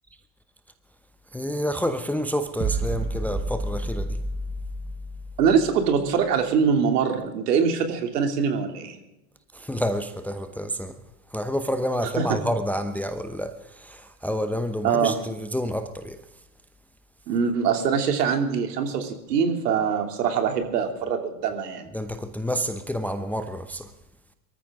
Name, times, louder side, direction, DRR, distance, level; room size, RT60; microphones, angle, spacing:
voice 1, 1.3-4.2 9.5-10.9 11.3-16.2 21.9-23.9, equal, 5° left, 0.7 m, -29 dB
sound 1, 2.6-6.0, right 2 dB, 20° right, 1.2 m, -30 dB
voice 2, 5.4-9.0 12.2-12.4 14.8-15.2 17.3-21.9, right 6 dB, 65° right, 3.0 m, -23 dB
24.0 x 14.0 x 3.7 m
hypercardioid pair, 95°, 50 cm